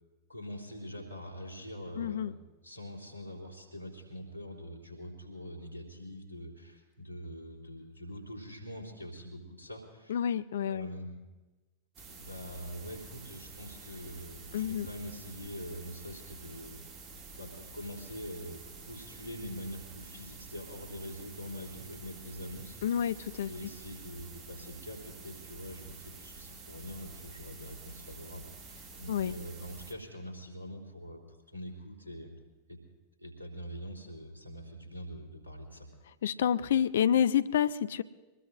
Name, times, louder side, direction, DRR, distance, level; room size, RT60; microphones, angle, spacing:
voice 1, 0.3-2.3 2.6-10.3 10.6-11.1 12.1-16.8 17.4-18.6 18.8-32.4 32.7-32.8 33.2-35.9, equal, 85° right, 1 dB, 3.3 m, -44 dB
voice 2, 2.0-2.3 10.1-10.9 14.5-14.9 22.8-23.5 29.1-29.3 36.2-38.0, left 9 dB, 60° left, 16 dB, 0.5 m, -28 dB
sound 1, 11.9-29.9, right 4 dB, 35° right, 2.3 m, -49 dB
24.5 x 20.0 x 2.5 m, 1.2 s
figure-of-eight pair, 90°, 0 cm